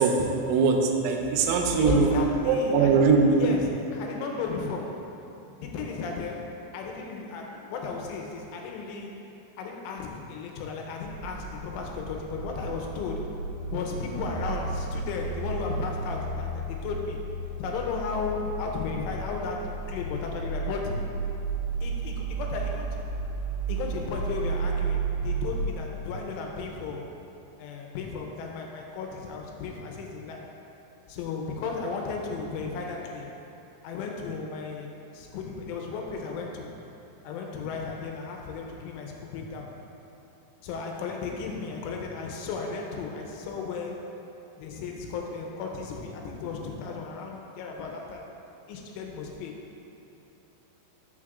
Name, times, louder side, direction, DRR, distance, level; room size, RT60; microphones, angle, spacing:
voice 1, 0.0-2.1 2.5-3.6, right 4 dB, 85° right, 2 dB, 3.3 m, -22 dB
voice 2, 1.8-5.1 5.6-9.3 9.6-17.2 17.6-21.0 21.8-23.0 23.7-27.1 27.6-30.5 31.1-33.3 33.8-36.7 37.2-39.7 40.6-44.0 44.6-48.3 48.7-49.6, left 4 dB, 80° left, 1 dB, 3.1 m, -35 dB
sound 1, 11.0-25.7, right 3 dB, 65° right, 2.9 m, -33 dB
13.0 x 7.2 x 2.4 m, 2.9 s
omnidirectional pair, 5.8 m